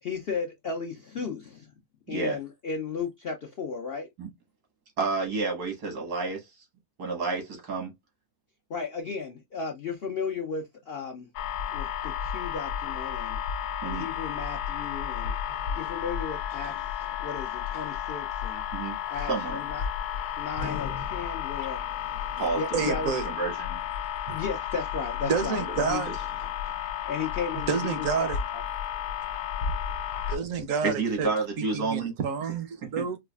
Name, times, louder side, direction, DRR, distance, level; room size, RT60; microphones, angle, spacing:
voice 1, 0.0-1.7 2.1-4.1 8.7-11.3 11.7-13.4 13.8-15.3 15.8-18.6 19.1-19.9 20.4-21.8 22.5-23.1 24.3-26.0 27.1-28.6, left 5 dB, 60° left, 0.6 m, -35 dB
voice 2, 5.0-6.4 7.0-7.9 13.8-14.1 18.7-19.0 19.3-19.6 22.4-22.9 23.2-23.8 25.5-25.9 30.8-32.1 32.8-33.1, right 4 dB, 80° right, 2.0 m, -30 dB
sound 1, 11.4-30.4, left 9 dB, 80° left, 1.1 m, -32 dB
voice 3, 22.7-23.3 24.3-24.4 25.2-26.1 27.7-28.4 30.3-31.3 31.7-33.2, right 6 dB, 65° right, 1.0 m, -29 dB
4.8 x 2.4 x 2.3 m
omnidirectional pair, 1.7 m